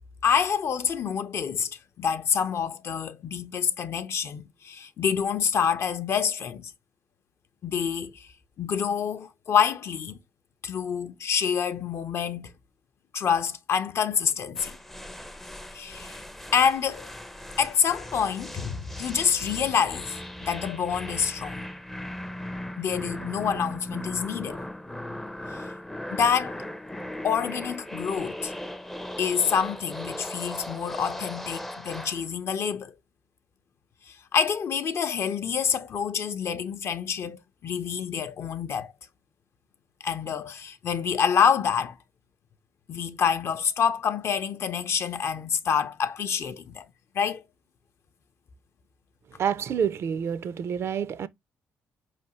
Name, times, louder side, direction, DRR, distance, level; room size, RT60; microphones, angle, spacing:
voice 1, 0.2-1.7 2.0-6.7 7.6-8.3 8.6-10.2 10.6-12.5 13.1-14.8 15.7-16.2 16.5-17.1 17.6-21.7 22.8-24.6 26.1-26.6 27.2-28.5 29.2-32.9 34.1-38.9 40.0-42.0 42.9-46.9 47.1-47.4, left 7 dB, 55° left, 0.5 m, -27 dB
sound 1, 14.6-32.2, left 1 dB, 5° left, 0.4 m, -38 dB
voice 2, 49.4-51.3, right 8 dB, 60° right, 0.4 m, -28 dB
4.7 x 3.3 x 2.8 m
cardioid pair, 95°, 5 cm